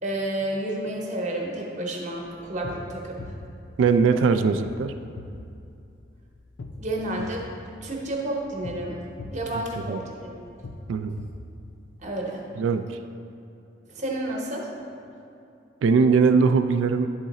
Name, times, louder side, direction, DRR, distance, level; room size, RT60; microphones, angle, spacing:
voice 1, 0.0-3.2 6.8-7.5 7.8-9.0 9.3-10.3 12.0-12.4 13.9-14.7, right 1 dB, 35° right, -1 dB, 0.9 m, -30 dB
sound 1, 2.1-12.1, left 2 dB, 65° left, 0.5 m, -42 dB
voice 2, 3.8-4.9 9.9-10.0 10.9-11.2 12.6-12.9 15.8-17.1, right 5 dB, 75° right, 8 dB, 0.3 m, -20 dB
10.5 x 3.8 x 4.1 m, 2.6 s
head